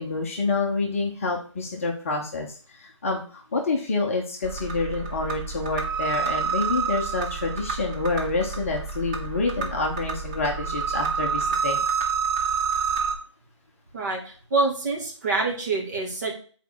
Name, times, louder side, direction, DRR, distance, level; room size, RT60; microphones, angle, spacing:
voice 1, 0.0-11.8, left 3 dB, 25° left, 1 dB, 0.8 m, -28 dB
sound 1, 4.4-13.1, right 6 dB, 10° right, 0.6 m, -28 dB
voice 2, 13.9-16.3, right 3 dB, 35° right, -2 dB, 2.1 m, -26 dB
7.1 x 4.2 x 4.7 m, 0.42 s
figure-of-eight pair, 150°, 16 cm